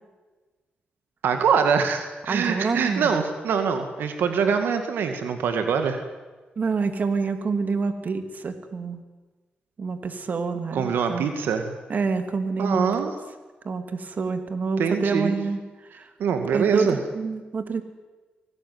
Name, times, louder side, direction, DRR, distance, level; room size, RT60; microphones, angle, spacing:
voice 1, 1.2-6.0 10.7-11.8 12.6-13.1 14.8-15.3 16.2-17.0, right 6 dB, 85° right, 6 dB, 2.1 m, -24 dB
voice 2, 2.3-3.1 6.6-9.0 9.8-11.3 11.9-13.1 13.6-15.6 15.9-16.1 16.5-17.8, right 4 dB, 55° right, 8 dB, 2.7 m, -27 dB
24.5 x 18.5 x 9.6 m, 1.3 s
cardioid pair, 70°, 3 cm